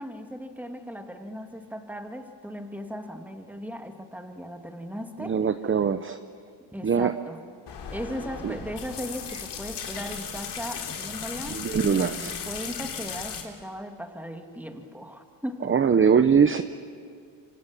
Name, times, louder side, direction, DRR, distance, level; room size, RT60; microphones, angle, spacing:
voice 1, 0.0-5.4 6.7-7.5 7.9-15.8, equal, 5° right, 5 dB, 2.3 m, -37 dB
voice 2, 5.2-6.2 6.8-7.1 8.4-8.5 11.5-12.3 15.7-16.6, right 6 dB, 30° right, 10 dB, 0.8 m, -22 dB
sound 1, 7.7-13.4, left 7 dB, 80° left, 3.5 m, -36 dB
27.0 x 25.0 x 7.3 m, 2.3 s
cardioid pair, 100°, 41 cm